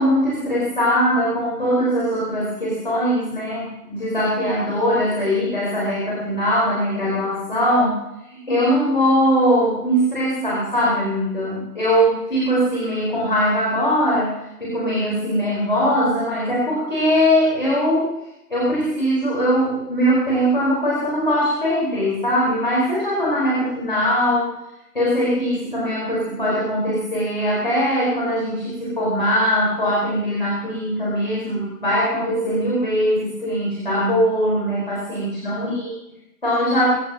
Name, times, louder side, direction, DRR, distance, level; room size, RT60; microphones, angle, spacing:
voice 1, 0.0-14.3 14.6-18.1 18.5-24.5 24.9-35.9 36.4-36.9, equal, 35° left, -6 dB, 4.5 m, -21 dB
24.5 x 16.0 x 2.9 m, 0.90 s
figure-of-eight pair, 170°, 48 cm